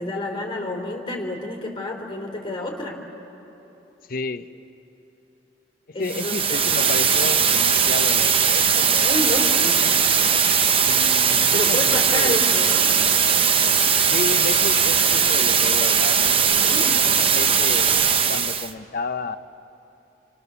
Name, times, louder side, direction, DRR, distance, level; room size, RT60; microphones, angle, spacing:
voice 1, 0.0-3.0 5.9-6.6 8.8-9.8 11.5-12.9 16.5-16.9, left 2 dB, 25° left, 1 dB, 3.0 m, -29 dB
voice 2, 4.1-4.5 6.0-9.2 10.8-12.4 14.1-18.0 18.3-19.4, left 3 dB, 50° left, 11 dB, 0.6 m, -32 dB
sound 1, 6.0-18.7, right 7 dB, 30° right, 0.7 m, -19 dB
29.0 x 25.5 x 6.8 m, 3.0 s
head